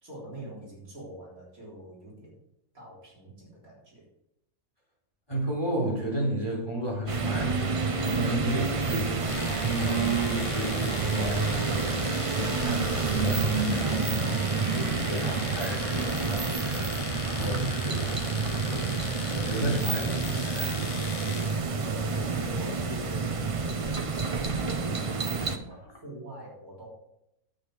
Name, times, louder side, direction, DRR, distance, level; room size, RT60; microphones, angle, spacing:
voice 1, 0.0-2.3 2.7-4.1 21.6-23.4 23.8-26.9, right 2 dB, 65° right, -4 dB, 4.3 m, -44 dB
voice 2, 5.3-17.0 17.2-19.0 19.3-21.1, right 1 dB, 15° left, -2 dB, 3.4 m, -33 dB
sound 1, 7.1-25.6, right 4 dB, 35° right, 0.6 m, -29 dB
Wind instrument woodwind instrument, 7.6-11.8 12.3-13.7 14.1-17.3, right 1 dB, 15° right, 1.0 m, -44 dB
Domestic sounds home sounds, 9.3-21.6, left 7 dB, 70° left, 1.3 m, -40 dB
9.7 x 8.3 x 4.8 m, 0.83 s
omnidirectional pair, 1.6 m